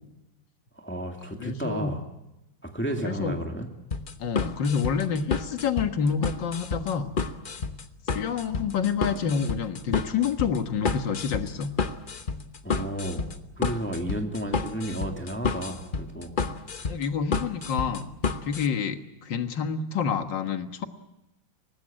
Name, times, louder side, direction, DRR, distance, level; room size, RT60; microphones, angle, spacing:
voice 1, 0.8-2.0 2.6-3.7 12.6-13.2 13.6-16.3 16.7-16.9, right 1 dB, 5° left, 3 dB, 2.2 m, -32 dB
voice 2, 1.4-1.9 3.0-3.4 4.2-7.1 8.1-11.7 16.9-18.1 18.4-20.9, left 6 dB, 70° left, 8 dB, 2.2 m, -28 dB
sound 1, 3.9-18.7, left 4 dB, 35° left, 1.0 m, -30 dB
24.0 x 19.5 x 8.7 m, 0.93 s
omnidirectional pair, 2.0 m